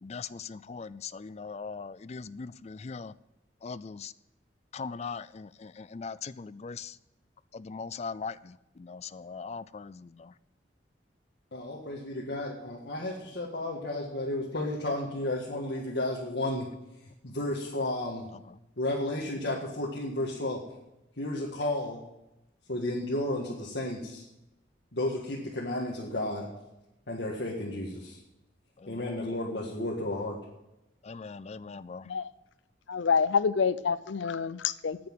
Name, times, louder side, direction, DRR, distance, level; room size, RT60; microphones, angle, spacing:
voice 1, 0.0-3.1 3.6-4.1 4.7-7.0 7.5-10.3 18.5-18.6 28.8-29.2 31.0-32.1, left 5 dB, 35° left, 17 dB, 0.4 m, -40 dB
voice 2, 11.5-16.7 17.2-18.3 18.8-20.6 21.2-22.0 22.7-24.2 24.9-26.5 27.1-28.2 28.9-30.4, left 1 dB, 60° left, -3 dB, 1.8 m, -32 dB
voice 3, 32.9-35.0, left 6 dB, 85° left, 16 dB, 0.5 m, -27 dB
9.7 x 8.7 x 8.9 m, 0.93 s
head